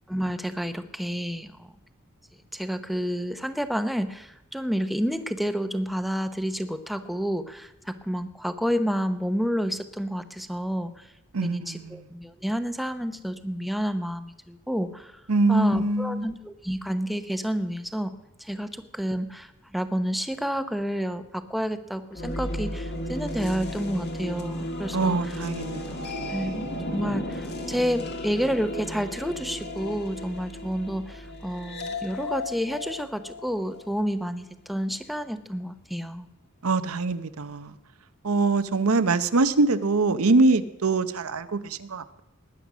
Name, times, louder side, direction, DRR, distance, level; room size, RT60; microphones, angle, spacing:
voice 1, 0.1-1.7 2.5-11.1 11.4-15.2 15.5-18.1 18.4-25.4 26.3-36.3, equal, ahead, 9 dB, 0.8 m, -30 dB
voice 2, 11.3-12.0 15.3-16.3 24.9-26.6 36.6-37.7 38.2-42.2, right 3 dB, 85° right, 11 dB, 0.8 m, -24 dB
sound 1, 22.1-34.0, left 1 dB, 50° left, 1.8 m, -34 dB
19.5 x 9.9 x 6.2 m, 0.90 s
head